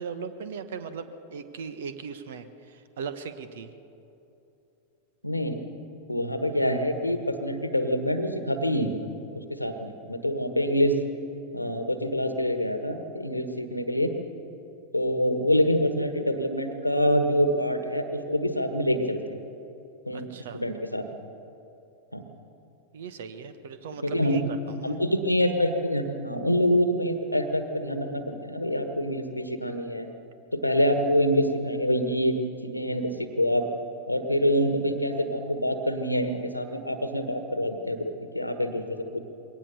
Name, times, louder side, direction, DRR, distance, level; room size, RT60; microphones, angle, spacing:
voice 1, 0.0-3.7 20.1-20.6 22.9-25.0, right 6 dB, 60° right, 11 dB, 1.2 m, -38 dB
voice 2, 5.2-5.6 6.1-8.9 9.3-10.9 11.5-14.1 14.9-19.4 20.1-20.3 20.5-21.1 22.1-22.2 24.0-24.5 24.8-30.1 30.5-32.3 32.6-33.6 34.1-39.2, equal, 85° left, 8 dB, 1.4 m, -26 dB
22.0 x 18.0 x 6.9 m, 2.9 s
figure-of-eight pair, 90°, 0 cm